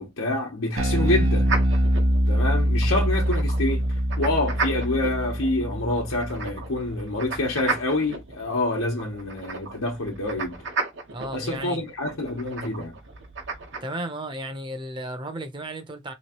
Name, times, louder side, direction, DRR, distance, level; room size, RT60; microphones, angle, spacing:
voice 1, 0.0-1.5 2.3-3.8 4.2-10.6 11.3-13.0, left 2 dB, 90° left, 1.1 m, -27 dB
Bass guitar, 0.8-7.2, equal, 90° right, 0.9 m, -24 dB
sound 1, 1.5-13.8, right 4 dB, 60° right, 1.1 m, -35 dB
voice 2, 11.1-11.8 13.8-16.1, right 1 dB, 25° right, 0.6 m, -34 dB
3.2 x 3.1 x 3.0 m
head